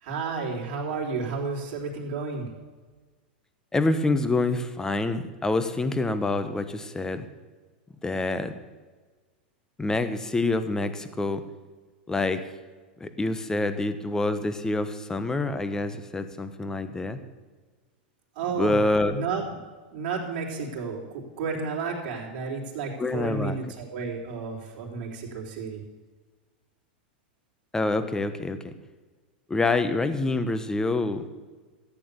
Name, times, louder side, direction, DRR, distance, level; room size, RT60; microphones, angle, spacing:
voice 1, 0.0-2.5 18.4-18.8 19.1-19.5 19.9-25.8, right 4 dB, 55° right, -2 dB, 3.7 m, -32 dB
voice 2, 3.7-7.3 8.0-8.5 9.8-11.4 12.1-12.4 13.0-17.2 18.6-19.1 23.0-23.6 27.7-28.6 29.5-31.3, left 2 dB, 10° left, 10 dB, 1.1 m, -26 dB
14.0 x 8.6 x 6.9 m, 1.4 s
hypercardioid pair, 110°, 5 cm